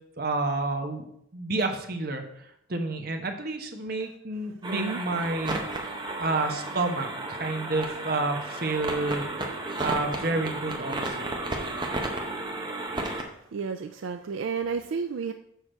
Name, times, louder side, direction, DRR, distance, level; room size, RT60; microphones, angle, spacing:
voice 1, 0.2-2.2 2.7-5.6 6.2-9.2 9.8-11.3, right 2 dB, 50° right, 4 dB, 1.0 m, -29 dB
sound 1, 4.6-13.2, right 2 dB, 20° right, 0.9 m, -33 dB
voice 2, 4.7-5.0 6.0-6.2 13.1-15.3, right 5 dB, 70° right, 8 dB, 0.4 m, -33 dB
6.5 x 4.7 x 6.4 m, 0.76 s
head